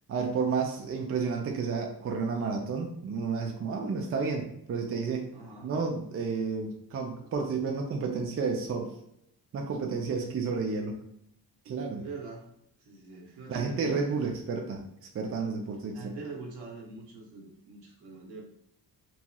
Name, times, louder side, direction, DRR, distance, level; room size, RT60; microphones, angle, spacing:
voice 1, 0.1-5.3 5.6-8.9 9.5-11.0 11.7-12.0 13.5-16.1, right 5 dB, 35° right, 2 dB, 0.4 m, -31 dB
voice 2, 5.3-5.7 10.4-10.5 12.0-12.5 12.8-14.2 15.9-18.4, right 3 dB, 75° right, -1 dB, 0.9 m, -44 dB
2.9 x 2.7 x 2.2 m, 0.74 s
cardioid pair, 105°, 40 cm